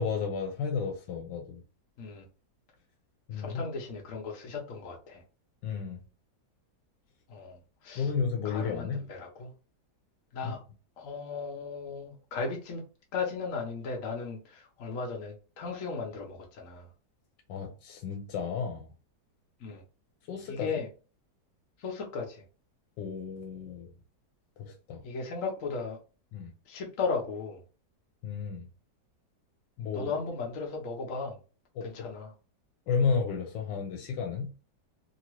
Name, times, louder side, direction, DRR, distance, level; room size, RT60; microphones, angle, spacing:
voice 1, 0.0-1.6 3.3-3.6 5.6-6.0 8.0-9.0 10.4-10.6 17.5-18.9 20.3-20.8 23.0-23.9 24.6-25.0 26.3-26.5 28.2-28.7 29.8-30.1 31.7-32.1 32.9-34.5, left 5 dB, 90° left, 1.3 m, -32 dB
voice 2, 3.3-5.2 7.3-7.6 7.8-8.1 8.4-9.5 10.3-10.6 11.0-12.8 13.1-16.9 19.6-19.8 20.5-20.9 21.8-22.4 25.0-26.0 26.7-27.6 29.9-31.4 31.8-32.3, left 4 dB, 60° left, 1.0 m, -36 dB
2.9 x 2.7 x 2.9 m
omnidirectional pair, 1.9 m